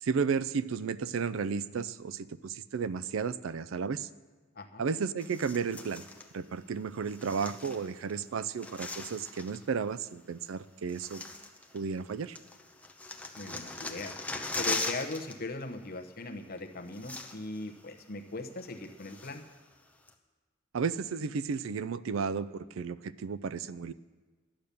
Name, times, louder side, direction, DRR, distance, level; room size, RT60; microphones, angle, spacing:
voice 1, 0.0-4.1 4.8-6.0 6.3-11.2 11.7-12.4 20.7-23.9, right 5 dB, 75° right, 16 dB, 0.4 m, -33 dB
sound 1, 5.2-6.3 7.1-8.1 8.4-9.6 10.5-10.6 10.9-12.1 12.4-15.4 15.6-15.8 16.6-16.7 16.9-17.6 18.0-18.1 18.6-19.6 20.1-20.2, left 3 dB, 5° left, 0.8 m, -39 dB
voice 2, 13.3-14.1 14.6-19.4, left 2 dB, 50° left, 5 dB, 1.0 m, -39 dB
11.5 x 8.8 x 6.9 m, 1.3 s
head